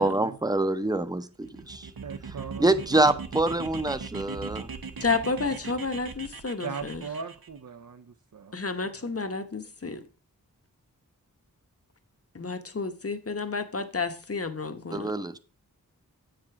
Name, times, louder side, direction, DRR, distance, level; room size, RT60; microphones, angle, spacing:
voice 1, 0.0-1.9 2.6-4.7 14.9-15.4, right 2 dB, 10° right, 11 dB, 0.7 m, -25 dB
sound 1, 1.4-7.5, right 5 dB, 90° right, 0.9 m, -40 dB
voice 2, 2.0-3.2 6.6-8.6 8.8-9.1, right 5 dB, 60° right, 9 dB, 0.7 m, -39 dB
voice 3, 5.0-7.0 8.5-10.0 12.3-15.1, left 4 dB, 40° left, 9 dB, 1.1 m, -31 dB
8.4 x 5.1 x 5.9 m, 0.37 s
wide cardioid pair, 60°, 34 cm